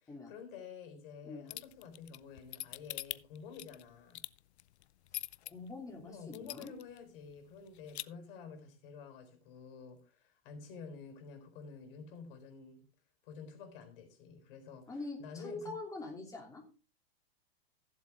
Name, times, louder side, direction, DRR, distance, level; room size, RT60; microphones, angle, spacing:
voice 1, 0.0-4.3 6.0-12.8 13.2-15.8, left 6 dB, 55° left, 6 dB, 4.0 m, -50 dB
sound 1, 1.5-5.5 6.0-6.1 6.3-7.0 7.3-7.4 7.7-8.0, left 15 dB, 85° left, 0.6 m, -42 dB
voice 2, 5.4-6.7 14.9-16.6, left 3 dB, 10° left, 1 dB, 3.0 m, -44 dB
15.5 x 7.5 x 3.6 m, 0.35 s
supercardioid pair, 145°, 32 cm